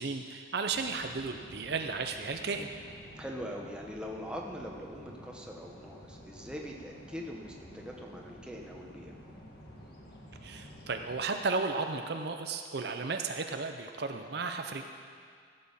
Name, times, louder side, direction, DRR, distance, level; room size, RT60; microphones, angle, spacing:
voice 1, 0.0-2.7 10.4-14.8, right 4 dB, 55° right, 5 dB, 0.6 m, -34 dB
sound 1, 0.7-11.2, equal, 55° left, 1.9 m, -51 dB
voice 2, 3.1-9.2, equal, 5° right, -1 dB, 1.1 m, -42 dB
15.5 x 8.5 x 5.6 m, 2.2 s
head